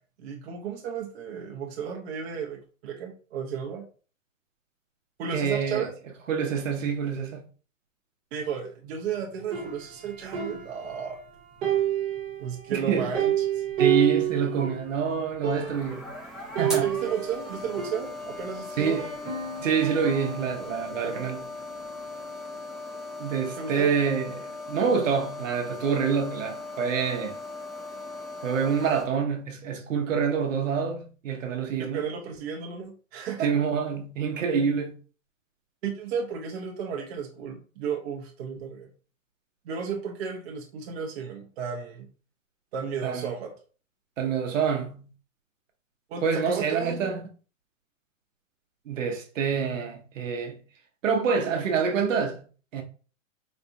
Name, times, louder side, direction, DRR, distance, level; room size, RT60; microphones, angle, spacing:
voice 1, 0.2-3.8 5.2-5.9 8.3-11.2 12.4-13.6 16.7-19.0 20.9-21.3 23.6-23.9 31.9-33.5 35.8-38.9 39.6-42.1 42.7-43.5 46.1-47.1, right 7 dB, 50° right, 0.7 m, -33 dB
voice 2, 5.3-5.9 6.3-7.4 12.7-13.1 13.8-16.1 16.6-17.0 18.8-19.1 19.6-21.4 23.2-27.4 28.4-32.1 33.4-35.0 43.0-43.3 44.2-45.1 46.2-47.2 48.9-50.6 51.0-52.4 52.7-52.8, right 6 dB, 75° right, 0.9 m, -27 dB
sound 1, 9.5-11.3 11.6-14.9 15.2-15.3 15.4-16.0 16.5-18.5 19.0-20.6, right 10 dB, 25° right, 1.0 m, -30 dB
sound 2, 15.5-29.0, left 2 dB, ahead, 0.4 m, -39 dB
4.1 x 2.2 x 2.6 m
hypercardioid pair, 145°, 39 cm